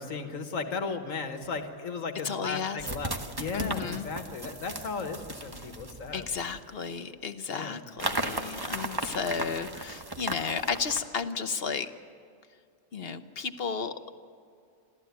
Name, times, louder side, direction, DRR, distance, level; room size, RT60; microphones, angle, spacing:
voice 1, 0.0-3.1 3.4-6.3 7.5-7.8, left 4 dB, 90° left, 7 dB, 1.8 m, -35 dB
voice 2, 2.2-2.8 3.5-4.1 6.1-11.9 12.9-13.9, left 6 dB, 55° left, 10 dB, 1.1 m, -33 dB
sound 1, 2.8-6.7 8.0-11.0, right 2 dB, 20° right, 1.2 m, -36 dB
27.0 x 14.5 x 9.6 m, 2.3 s
omnidirectional pair, 1.3 m